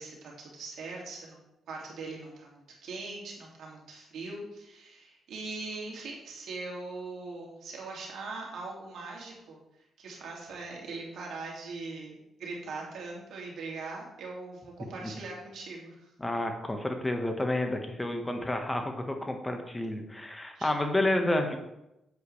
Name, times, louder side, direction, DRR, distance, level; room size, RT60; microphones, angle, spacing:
voice 1, 0.0-1.4 1.7-9.6 10.0-16.1 20.5-20.8, right 3 dB, 75° right, -2 dB, 2.4 m, -41 dB
voice 2, 16.2-21.6, left 1 dB, 20° left, 4 dB, 1.4 m, -30 dB
8.2 x 7.9 x 3.3 m, 0.89 s
supercardioid pair, 60°, 0 cm